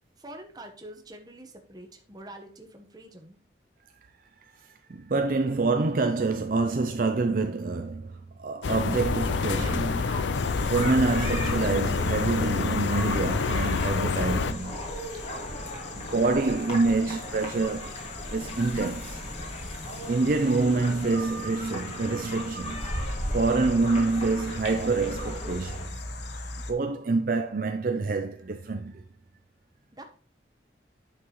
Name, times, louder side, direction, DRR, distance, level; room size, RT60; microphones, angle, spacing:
voice 1, 0.2-3.4 29.9-30.0, right 1 dB, 20° right, 1.1 m, -45 dB
voice 2, 4.6-14.8 15.9-19.2 20.1-22.9 23.3-26.0 26.7-29.0, right 3 dB, 50° right, 0.5 m, -27 dB
sound 1, 8.6-14.5, left 4 dB, 90° left, 0.5 m, -27 dB
sound 2, 9.2-25.8, equal, 35° left, 2.1 m, -37 dB
sound 3, 10.3-26.7, left 3 dB, 75° left, 1.1 m, -41 dB
9.4 x 5.9 x 3.1 m
head